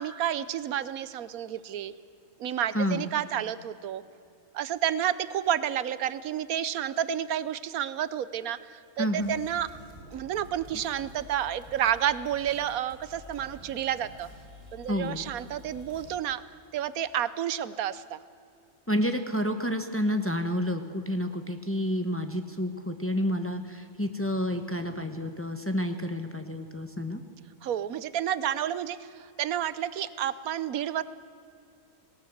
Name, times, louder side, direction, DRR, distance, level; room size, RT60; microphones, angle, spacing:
voice 1, 0.0-1.9 2.4-4.0 4.5-9.7 10.1-14.3 14.7-16.4 16.7-18.2 27.6-31.0, right 10 dB, 85° right, 16 dB, 1.2 m, -30 dB
voice 2, 2.7-3.1 9.0-9.3 14.9-15.2 18.9-27.2, equal, 10° left, 6 dB, 1.0 m, -29 dB
sound 1, 9.2-16.2, left 1 dB, 60° right, 4.4 m, -50 dB
18.5 x 18.5 x 8.0 m, 2.5 s
omnidirectional pair, 1.5 m